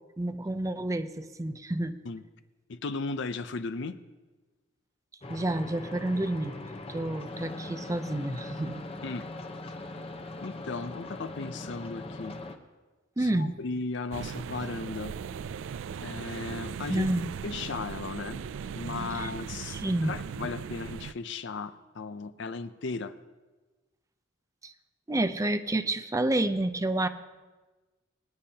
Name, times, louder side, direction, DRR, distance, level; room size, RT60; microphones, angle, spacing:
voice 1, 0.2-2.0 5.3-6.5 6.9-8.9 13.2-13.6 16.9-17.3 19.1-19.3 19.7-20.2 24.6-24.7 25.1-27.1, right 1 dB, 15° right, 9 dB, 0.5 m, -29 dB
voice 2, 2.7-4.0 9.0-9.3 10.4-12.4 13.2-15.1 16.0-17.1 17.4-18.4 18.7-23.1, left 4 dB, 60° left, 12 dB, 0.5 m, -36 dB
sound 1, 5.2-12.6, left 2 dB, 30° left, 0.8 m, -41 dB
sound 2, 14.1-21.1, right 6 dB, 75° right, 0.3 m, -38 dB
22.5 x 10.5 x 2.8 m, 1.2 s
head